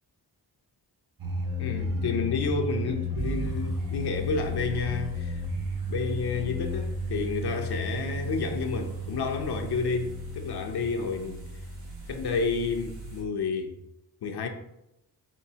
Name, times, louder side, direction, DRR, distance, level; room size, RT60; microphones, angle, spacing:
sound 1, 1.2-13.1, left 1 dB, 55° right, 0.9 m, -33 dB
voice 1, 1.6-5.4 5.9-11.5 12.1-13.7 14.2-14.5, left 4 dB, 70° left, 4 dB, 0.6 m, -30 dB
sound 2, 3.2-13.2, right 3 dB, 80° right, 1.3 m, -44 dB
5.2 x 2.6 x 2.7 m, 0.86 s
cardioid pair, 80°, 41 cm